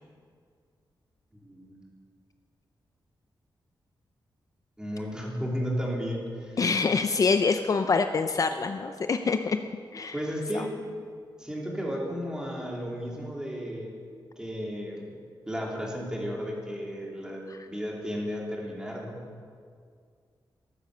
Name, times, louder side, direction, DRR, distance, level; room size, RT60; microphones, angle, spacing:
voice 1, 1.4-1.9 4.8-6.6 10.1-10.8 11.4-14.0 14.4-15.0 15.5-19.2, equal, 10° right, -2 dB, 3.0 m, -33 dB
voice 2, 6.6-9.6 9.9-10.2 10.5-10.7 17.5-17.7, left 4 dB, 40° left, 8 dB, 0.5 m, -25 dB
14.0 x 12.0 x 6.7 m, 2.1 s
wide cardioid pair, 130°, 8 cm